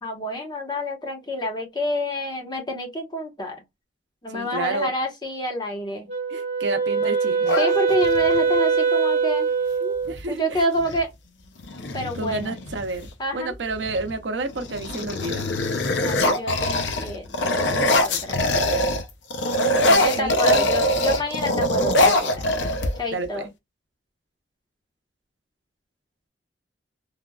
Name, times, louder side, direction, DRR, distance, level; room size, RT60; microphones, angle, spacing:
voice 1, 0.0-3.6 4.2-6.1 7.0-7.1 7.6-9.5 9.8-10.0 10.3-11.1 11.9-12.5 13.2-13.6 16.0-18.8 20.0-22.5 23.0-23.5, equal, 25° left, 1.0 m, -28 dB
voice 2, 4.3-4.9 6.3-7.6 10.1-10.7 12.1-15.4 19.8-20.6 23.1-23.5, right 3 dB, 90° right, 0.6 m, -30 dB
Wind instrument woodwind instrument, 6.1-10.1, right 5 dB, 40° right, 1.1 m, -22 dB
sound 1, 7.4-8.4 10.1-10.2 10.5-11.0 11.6-13.1 13.7-14.1 14.5-19.0 19.3-23.2, left 1 dB, 80° left, 0.6 m, -23 dB
3.4 x 2.3 x 2.3 m
head